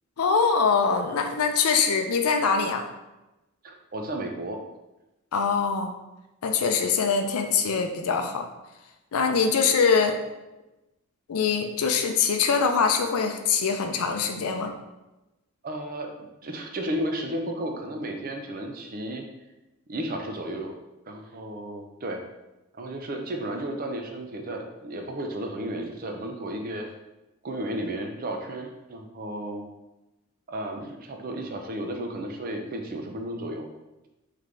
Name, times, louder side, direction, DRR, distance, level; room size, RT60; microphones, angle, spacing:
voice 1, 0.2-2.9 5.3-5.9 6.4-8.5 9.1-10.2 11.3-14.7, left 5 dB, 80° left, 5 dB, 0.5 m, -23 dB
voice 2, 3.6-4.6 15.6-16.1 16.4-19.2 19.9-20.7 21.1-22.2 22.8-26.9 27.4-29.6 30.5-33.7, right 1 dB, 40° right, 3 dB, 0.5 m, -33 dB
3.8 x 3.2 x 3.3 m, 1.0 s
head